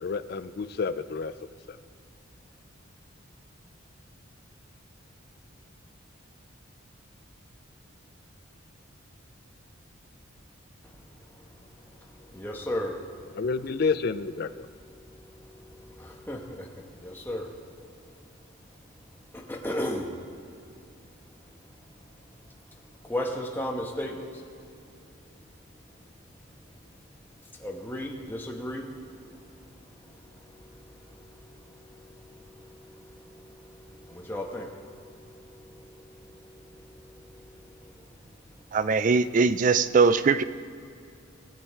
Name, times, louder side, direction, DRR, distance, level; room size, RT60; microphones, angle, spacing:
voice 1, 0.0-1.3 1.7-1.8 13.4-14.7, left 4 dB, 50° left, 13 dB, 0.4 m, -29 dB
voice 2, 10.8-13.6 14.6-17.7 18.0-18.3 18.9-20.5 20.7-20.8 21.5-24.7 26.5-26.6 27.1-38.8, left 1 dB, 10° left, 0 dB, 1.1 m, -39 dB
voice 3, 38.7-40.4, right 4 dB, 40° right, 14 dB, 0.3 m, -21 dB
18.5 x 6.3 x 4.6 m, 2.5 s
head